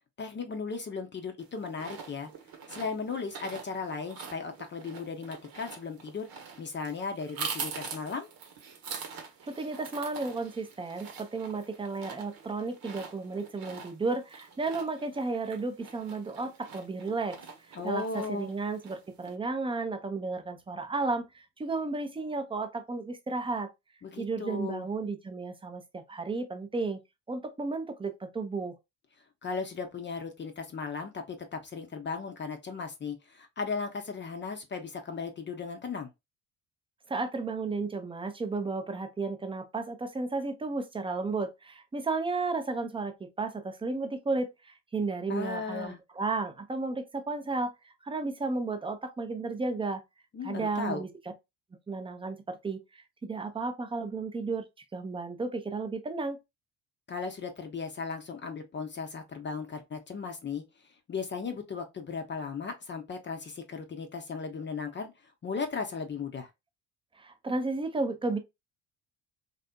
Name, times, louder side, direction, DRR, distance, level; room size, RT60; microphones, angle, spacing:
voice 1, 0.2-2.3 2.7-6.3 6.6-8.3 17.7-18.5 24.0-24.9 29.4-36.1 45.3-46.0 50.3-51.0 57.1-66.5, left 5 dB, 25° left, 0.7 m, -36 dB
sound 1, 1.4-19.3, right 6 dB, 55° right, 1.0 m, -44 dB
voice 2, 9.5-17.4 17.8-23.7 24.2-27.0 27.3-28.7 37.1-47.7 48.0-50.0 50.4-51.1 51.9-54.7 54.9-56.4 67.2-68.4, right 3 dB, 10° right, 0.6 m, -33 dB
3.4 x 2.4 x 2.2 m
hypercardioid pair, 60°, 43 cm